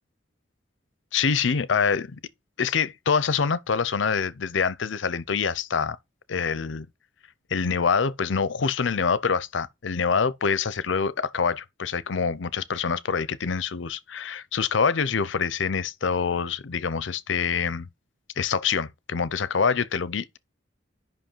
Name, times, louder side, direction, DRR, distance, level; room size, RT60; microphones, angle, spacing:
voice 1, 1.1-2.1 2.6-6.0 6.3-6.9 7.5-17.9 18.4-20.4, left 6 dB, 75° left, 0.6 m, -25 dB
7.8 x 5.5 x 4.5 m
head